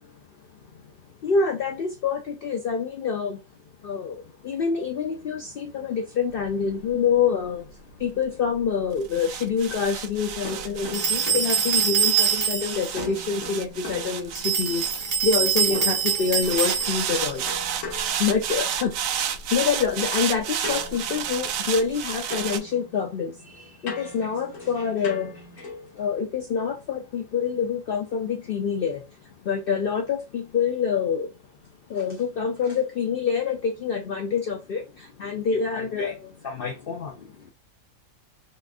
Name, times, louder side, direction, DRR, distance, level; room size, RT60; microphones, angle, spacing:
voice 1, 1.2-3.4 3.8-17.5 18.2-19.0 19.5-31.3 31.9-37.5, left 6 dB, 60° left, 0.6 m, -27 dB
sound 1, 6.3-15.7 16.4-22.6, right 9 dB, 85° right, 1.0 m, -31 dB
sound 2, 10.5-12.5 13.0-14.8 15.7-19.0 20.6-22.0 22.3-26.0, left 3 dB, 80° left, 1.4 m, -40 dB
sound 3, 10.9-12.9 14.4-17.2, right 7 dB, 65° right, 1.3 m, -24 dB
4.1 x 2.3 x 2.4 m
omnidirectional pair, 1.4 m